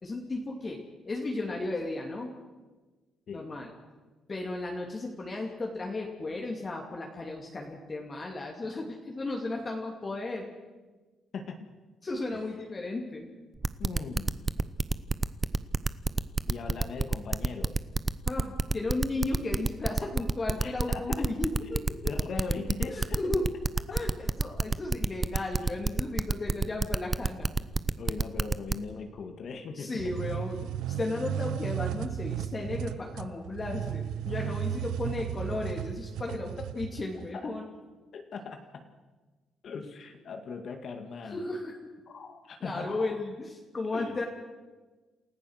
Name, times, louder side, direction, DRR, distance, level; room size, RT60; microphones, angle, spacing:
voice 1, 0.0-0.8 1.0-2.3 3.3-3.7 4.3-10.5 12.0-13.3 18.3-22.2 22.9-23.5 23.9-27.5 29.8-30.7 31.0-37.6 41.2-41.9 42.6-44.3, left 2 dB, 30° left, 0 dB, 2.8 m, -34 dB
voice 2, 11.3-11.7 12.3-12.4 13.8-14.4 16.5-17.7 20.6-21.3 22.0-23.2 23.9-24.0 28.0-30.1 36.6-36.7 37.3-37.5 38.1-38.9 39.6-41.5 42.1-43.2 43.9-44.2, left 4 dB, 60° left, 5 dB, 2.0 m, -39 dB
sound 1, 13.6-28.7, right 3 dB, 25° right, 0.7 m, -27 dB
sound 2, 30.0-37.3, right 10 dB, 90° right, 0.7 m, -35 dB
28.0 x 14.5 x 6.5 m, 1.3 s
cardioid pair, 90°, 0 cm